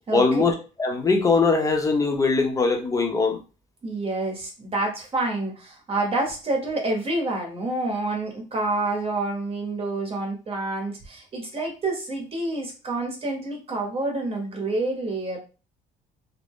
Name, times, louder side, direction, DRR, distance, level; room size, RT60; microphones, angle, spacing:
voice 1, 0.1-3.4, left 4 dB, 20° left, 3 dB, 0.7 m, -21 dB
voice 2, 3.8-15.4, right 2 dB, 35° right, 1 dB, 0.9 m, -28 dB
2.6 x 2.1 x 3.5 m, 0.33 s
cardioid pair, 110°, 17 cm